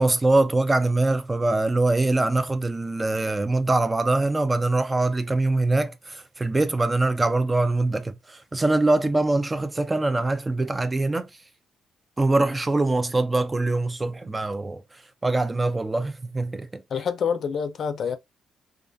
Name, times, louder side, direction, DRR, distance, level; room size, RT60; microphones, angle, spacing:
voice 1, 0.0-11.3 12.2-14.8 15.2-16.8, right 2 dB, 20° right, 0.3 m, -23 dB
voice 2, 16.9-18.2, left 6 dB, 60° left, 0.4 m, -27 dB
2.3 x 2.3 x 2.5 m
cardioid pair, 90°, 0 cm